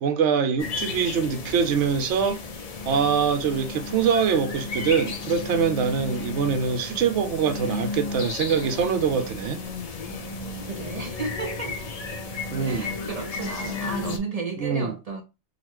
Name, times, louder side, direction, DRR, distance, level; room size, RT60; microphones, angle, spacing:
voice 1, 0.0-2.4 2.8-9.6 12.5-12.9 14.6-14.9, right 6 dB, 85° right, 0.9 m, -24 dB
sound 1, 0.6-14.2, left 3 dB, 50° left, 0.5 m, -33 dB
voice 2, 10.7-11.8 12.6-15.2, right 4 dB, 60° right, 0.4 m, -33 dB
3.9 x 2.1 x 2.9 m
omnidirectional pair, 1.2 m